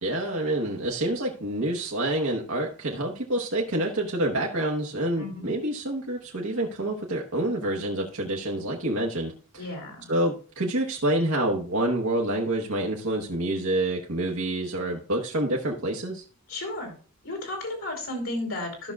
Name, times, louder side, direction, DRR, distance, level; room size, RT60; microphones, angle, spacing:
voice 1, 0.0-9.6 10.1-16.2, right 1 dB, 70° right, -1 dB, 1.2 m, -27 dB
voice 2, 5.2-5.5 9.6-10.1 16.5-16.9 17.2-18.9, left 2 dB, 65° left, 2 dB, 3.2 m, -33 dB
14.0 x 6.0 x 2.4 m, 0.39 s
head